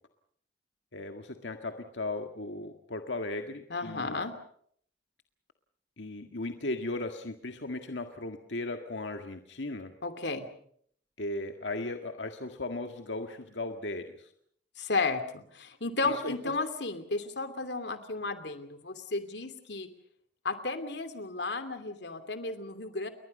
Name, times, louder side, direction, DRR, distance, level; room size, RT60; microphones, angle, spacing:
voice 1, 0.9-4.2 6.0-9.9 11.2-14.3 16.0-16.3, left 2 dB, 90° left, 5 dB, 1.9 m, -37 dB
voice 2, 3.7-4.3 10.0-10.5 14.8-19.9 20.4-23.1, left 3 dB, 70° left, 10 dB, 2.8 m, -33 dB
30.0 x 22.5 x 5.5 m, 0.63 s
head